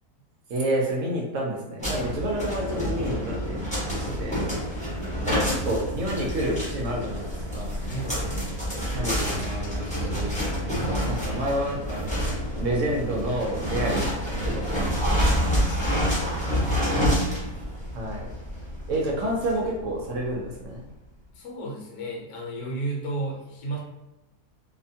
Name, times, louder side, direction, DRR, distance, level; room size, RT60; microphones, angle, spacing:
voice 1, 0.5-3.6 4.2-4.4 5.2-8.2 8.9-10.4 11.0-12.1 12.6-14.2 14.4-15.4 15.9-16.8 17.9-18.3 18.9-20.9, right 1 dB, 70° right, -2 dB, 0.8 m, -29 dB
sound 1, 1.8-20.5, equal, 10° left, 0.5 m, -28 dB
voice 2, 4.0-4.3 7.9-8.6 13.8-13.9 15.7-16.5 16.8-17.5 21.3-23.8, right 2 dB, 70° left, -2 dB, 1.1 m, -34 dB
2.7 x 2.2 x 2.6 m, 0.98 s
omnidirectional pair, 1.8 m